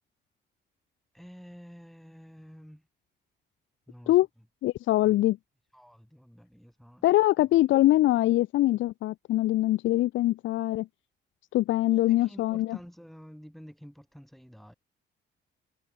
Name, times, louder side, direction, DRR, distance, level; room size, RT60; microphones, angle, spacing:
voice 1, 1.1-2.9 3.9-4.2 5.0-5.2 5.7-7.1 11.9-14.7, equal, ahead, 5.0 m, -50 dB
voice 2, 4.6-5.4 7.0-10.9 11.5-12.8, left 15 dB, 75° left, 0.5 m, -23 dB
cardioid pair, 90°, 20 cm